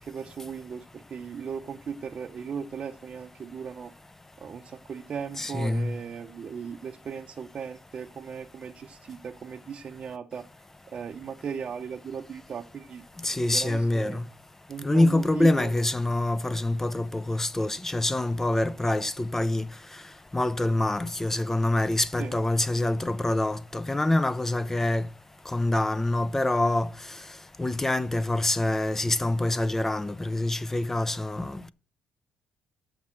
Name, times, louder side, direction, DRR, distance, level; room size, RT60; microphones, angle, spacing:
voice 1, 0.0-3.9 4.4-10.5 10.9-14.2 14.7-15.8 22.2-22.4, right 6 dB, 40° right, 0.7 m, -37 dB
voice 2, 5.4-5.9 13.2-14.2 14.8-19.6 20.3-25.0 25.5-26.9 27.6-31.7, left 1 dB, 15° left, 0.4 m, -25 dB
7.3 x 5.9 x 7.3 m
cardioid pair, 105°, 3 cm